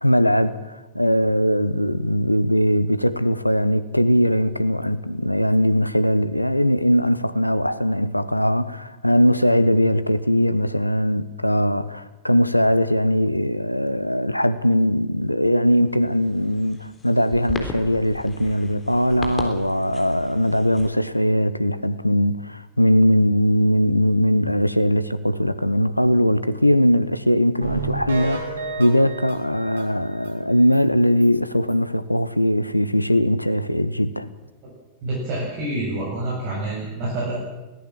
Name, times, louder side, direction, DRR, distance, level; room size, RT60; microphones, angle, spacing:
voice 1, 0.0-34.3, equal, 85° left, 0.9 m, -20 dB
sound 1, 15.7-20.9, left 3 dB, 20° left, 3.6 m, -37 dB
sound 2, 27.6-30.3 30.7-30.8 31.2-31.3 31.7-31.8, right 3 dB, 70° right, 2.8 m, -31 dB
voice 2, 35.0-37.4, right 2 dB, 45° right, 7.5 m, -27 dB
23.5 x 17.5 x 7.6 m
figure-of-eight pair, 90°, 0 cm